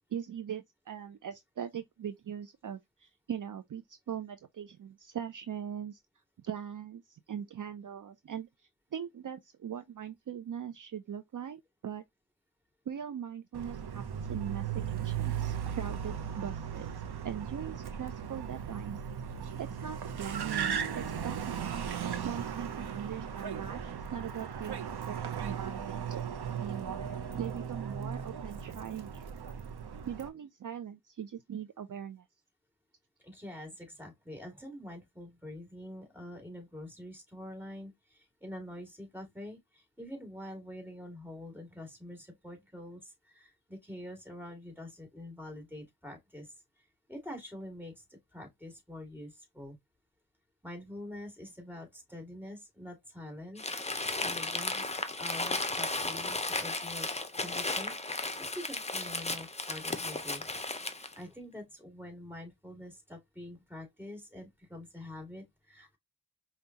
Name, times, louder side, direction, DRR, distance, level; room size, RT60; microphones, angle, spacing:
voice 1, 0.1-6.0 6.4-12.0 12.9-14.0 14.3-19.0 19.6-23.8 24.1-26.2 26.6-29.3 30.1-32.2, right 8 dB, 55° right, 0.5 m, -41 dB
Car, 13.5-30.3, right 8 dB, 90° right, 0.7 m, -37 dB
voice 2, 33.2-46.5 47.1-49.8 50.6-53.6 53.9-57.1 57.4-58.3 58.5-60.5 60.9-66.0, left 1 dB, 5° right, 2.1 m, -46 dB
Crumpling crinkling, 53.6-61.2, left 2 dB, 15° left, 0.6 m, -35 dB
5.4 x 2.3 x 2.8 m
wide cardioid pair, 75°, 38 cm